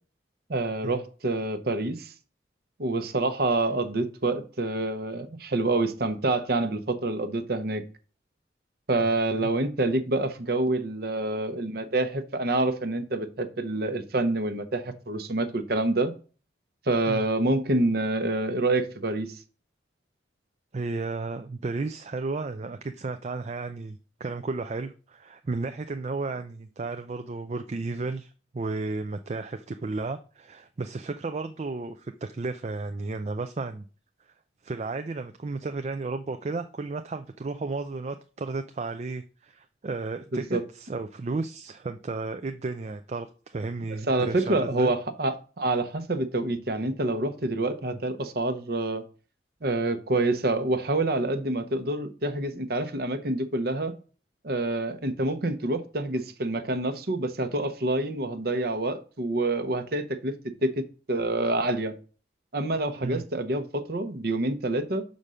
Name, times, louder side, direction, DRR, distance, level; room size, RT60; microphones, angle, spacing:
voice 1, 0.5-2.1 2.8-7.8 8.9-16.1 16.9-19.4 40.3-40.6 44.1-49.0 49.6-53.9 54.4-60.3 60.6-60.8 61.1-61.9 62.5-65.0, right 2 dB, 55° right, 0.9 m, -27 dB
voice 2, 20.7-33.8 34.6-44.9 62.9-63.2, right 3 dB, 35° right, 0.4 m, -33 dB
5.5 x 5.1 x 6.3 m
head